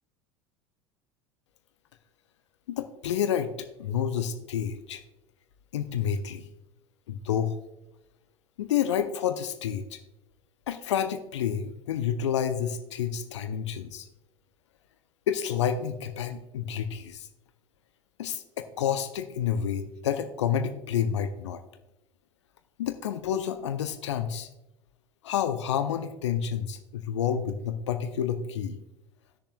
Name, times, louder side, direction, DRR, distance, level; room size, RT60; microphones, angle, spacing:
voice 1, 2.7-3.5 3.8-5.0 5.7-6.5 7.1-7.6 8.6-10.0 10.7-14.1 15.3-17.3 18.2-21.6 22.8-24.5 25.2-28.8, left 8 dB, 65° left, 9 dB, 0.6 m, -29 dB
18.0 x 6.7 x 2.2 m, 0.93 s
figure-of-eight pair, 70°, 16 cm